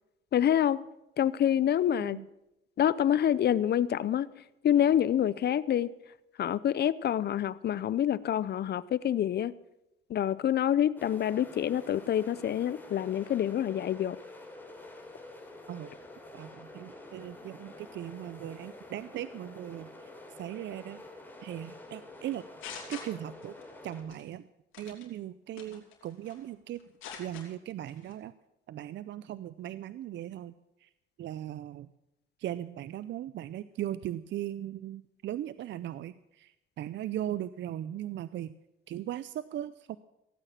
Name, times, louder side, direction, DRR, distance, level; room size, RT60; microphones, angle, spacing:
voice 1, 0.3-0.8 1.2-2.2 2.8-4.3 4.6-5.9 6.4-9.5 10.1-14.2, left 10 dB, 55° left, 19 dB, 0.6 m, -27 dB
sound 1, 11.0-24.0, left 1 dB, 10° left, 3.8 m, -48 dB
voice 2, 16.3-19.9 20.4-21.0 21.4-22.4 22.9-23.5 23.8-24.5 24.8-26.8 27.2-28.3 28.7-30.5 30.8-30.9 31.2-31.9 32.4-38.5 38.9-40.0, right 12 dB, 65° right, 16 dB, 0.5 m, -38 dB
sound 2, 22.2-23.6 23.9-24.2 24.7-25.1 25.6-26.4 26.8-27.5 27.9-28.1, left 7 dB, 90° left, 3.3 m, -44 dB
16.5 x 9.1 x 7.4 m, 0.89 s
cardioid pair, 90°, 20 cm